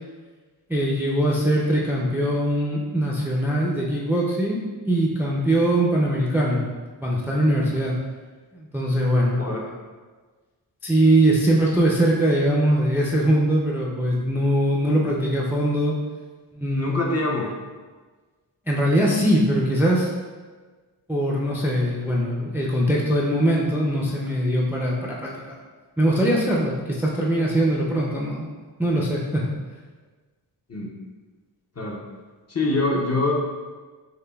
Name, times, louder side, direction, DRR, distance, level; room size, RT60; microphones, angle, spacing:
voice 1, 0.7-6.6 7.0-8.0 8.5-9.5 10.8-15.9 16.5-17.0 18.7-20.1 21.1-25.6 26.0-28.5 28.8-29.5, right 1 dB, 5° right, -3 dB, 0.4 m, -22 dB
voice 2, 16.7-17.5 30.7-30.9 31.8-32.0 32.5-33.4, left 2 dB, 35° left, -2 dB, 0.6 m, -24 dB
6.4 x 2.2 x 2.3 m, 1.4 s
wide cardioid pair, 85°, 43 cm